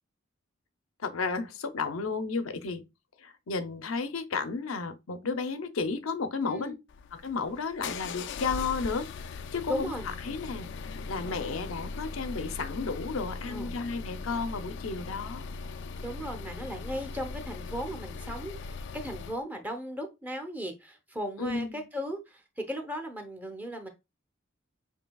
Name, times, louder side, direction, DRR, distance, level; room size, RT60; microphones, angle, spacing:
voice 1, 1.0-2.8 3.2-6.7 7.1-15.5 21.4-21.9, left 4 dB, 90° left, 0.7 m, -33 dB
voice 2, 6.4-6.8 9.7-10.1 13.5-13.8 16.0-23.9, equal, 10° right, 0.8 m, -37 dB
sound 1, 6.9-19.4, left 4 dB, 60° left, 0.3 m, -39 dB
7.2 x 2.8 x 2.3 m
head